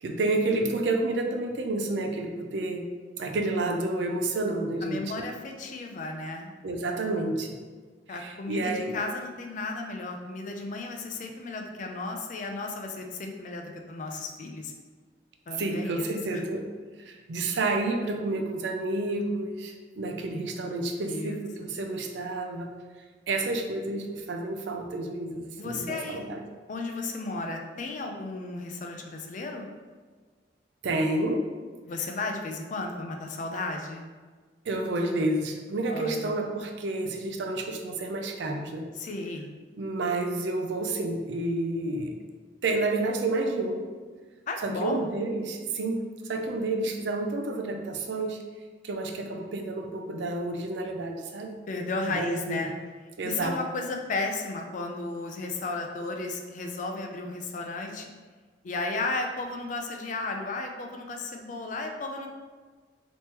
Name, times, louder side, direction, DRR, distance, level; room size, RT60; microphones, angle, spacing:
voice 1, 0.0-2.8 3.2-5.3 6.6-7.5 8.2-9.0 15.6-16.6 17.0-22.7 23.3-26.4 30.8-31.4 34.7-38.9 39.8-42.1 42.6-43.8 44.6-46.0 46.3-48.4 48.8-51.6 52.1-52.6 53.2-53.6, right 2 dB, 80° right, 4 dB, 0.4 m, -30 dB
voice 2, 4.8-6.5 8.1-14.7 15.5-16.4 21.1-21.4 21.6-21.7 25.6-26.2 26.7-29.7 31.8-34.1 35.9-36.4 38.9-39.5 44.5-45.1 51.7-52.7 53.2-58.1 58.6-62.3, left 3 dB, 45° left, 3 dB, 0.4 m, -34 dB
3.5 x 3.0 x 2.9 m, 1.4 s
head